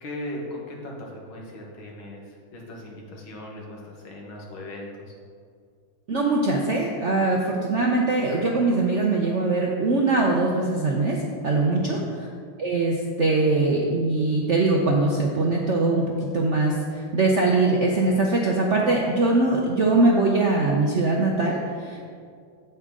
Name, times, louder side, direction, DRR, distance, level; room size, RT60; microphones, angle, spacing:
voice 1, 0.0-2.2 2.5-5.1 11.6-12.0, left 1 dB, 85° left, -2 dB, 2.2 m, -38 dB
voice 2, 6.1-11.2 11.4-12.0 12.6-22.0, right 2 dB, 65° right, -1 dB, 0.7 m, -22 dB
8.7 x 8.0 x 3.7 m, 2.2 s
omnidirectional pair, 2.2 m